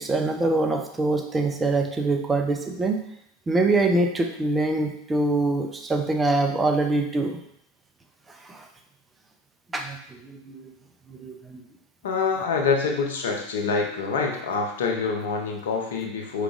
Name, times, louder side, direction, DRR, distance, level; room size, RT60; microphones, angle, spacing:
voice 1, 0.0-3.0 3.5-7.4 8.5-8.6 9.7-10.0 10.2-10.7 11.1-11.6, right 2 dB, 15° right, 3 dB, 0.6 m, -24 dB
voice 2, 12.0-16.4, left 5 dB, 70° left, 2 dB, 0.7 m, -26 dB
4.8 x 3.1 x 2.5 m, 0.74 s
figure-of-eight pair, 85°, 0 cm